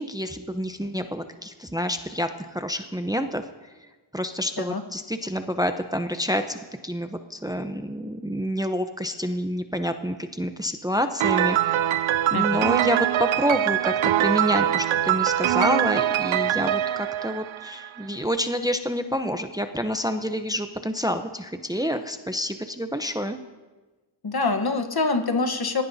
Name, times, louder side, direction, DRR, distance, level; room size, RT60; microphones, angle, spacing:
voice 1, 0.0-3.4 4.1-11.9 12.3-13.9 14.2-23.4, equal, 10° right, 7 dB, 0.8 m, -28 dB
Piano, 11.2-18.0, right 12 dB, 75° right, 0.6 m, -23 dB
voice 2, 12.3-12.6 24.2-25.8, left 3 dB, 50° left, 6 dB, 1.3 m, -25 dB
22.0 x 16.5 x 2.8 m, 1.2 s
wide cardioid pair, 65°, 49 cm